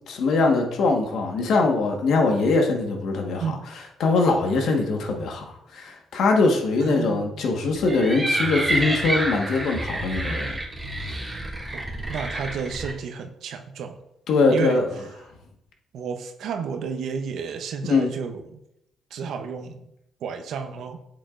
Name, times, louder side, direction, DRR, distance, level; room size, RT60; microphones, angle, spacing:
voice 1, 0.1-3.6 4.0-10.6 14.3-14.9 17.8-18.1, left 3 dB, 75° left, 2 dB, 1.4 m, -22 dB
voice 2, 6.8-7.5 11.7-11.8 12.1-14.0 14.5-14.8 15.9-18.6 19.1-19.9 20.2-21.0, right 6 dB, 75° right, 6 dB, 0.7 m, -32 dB
sound 1, 7.8-12.9, right 1 dB, 5° right, 2.8 m, -28 dB
8.8 x 7.5 x 2.5 m, 0.82 s
cardioid pair, 90°, 0 cm